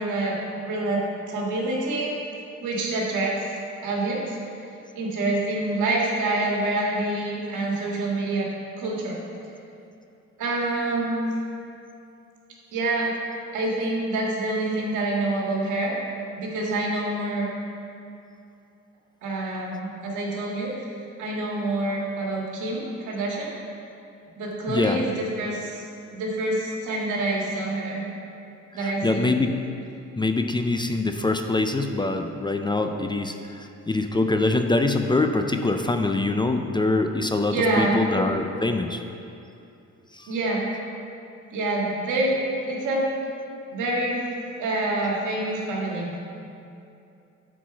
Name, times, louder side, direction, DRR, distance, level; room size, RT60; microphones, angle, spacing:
voice 1, 0.0-2.1 2.6-3.6 3.8-4.3 5.0-8.5 8.8-9.2 10.4-11.3 12.7-13.1 13.5-15.9 16.3-17.5 19.2-20.7 21.2-23.5 24.3-28.0 28.7-29.3 37.5-38.0 40.3-40.7 41.5-42.4 42.7-43.1 43.7-44.2 44.6-46.1, right 2 dB, 85° right, -2 dB, 1.7 m, -26 dB
voice 2, 24.7-25.0 28.7-29.6 30.2-39.0 40.1-40.3, left 2 dB, 15° left, 6 dB, 0.4 m, -24 dB
8.1 x 4.7 x 5.8 m, 2.7 s
cardioid pair, 90°, 30 cm